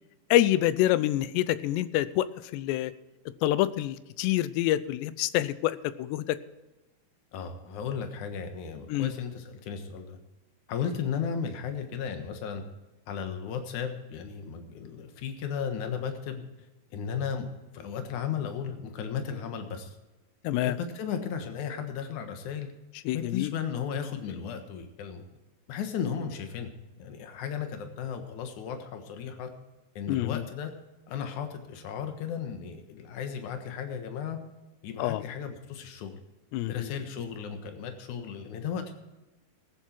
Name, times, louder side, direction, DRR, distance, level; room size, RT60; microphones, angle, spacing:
voice 1, 0.3-2.3 2.5-2.9 3.4-6.4 8.9-9.1 20.4-20.8 23.1-23.5 30.1-30.4 35.0-35.2 36.5-36.9, left 14 dB, 80° left, 16 dB, 2.7 m, -26 dB
voice 2, 7.3-10.2 10.7-12.6 13.1-16.4 16.9-17.5 17.7-20.0 20.5-22.7 23.1-25.2 25.7-26.7 27.0-29.5 30.0-30.7 31.1-34.4 34.8-36.2 36.7-38.9, left 7 dB, 60° left, 6 dB, 2.2 m, -35 dB
18.0 x 9.1 x 4.5 m, 1.1 s
omnidirectional pair, 5.1 m